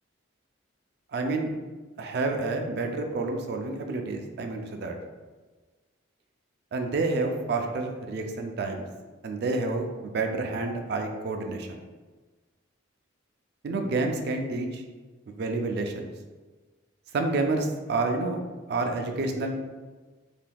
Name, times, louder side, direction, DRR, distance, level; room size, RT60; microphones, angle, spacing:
voice 1, 1.1-1.5 2.0-5.0 6.7-8.9 9.2-11.8 13.6-14.8 15.4-16.1 17.1-18.4 18.7-19.6, right 3 dB, 55° right, 4 dB, 0.3 m, -29 dB
3.4 x 2.7 x 2.2 m, 1.3 s
head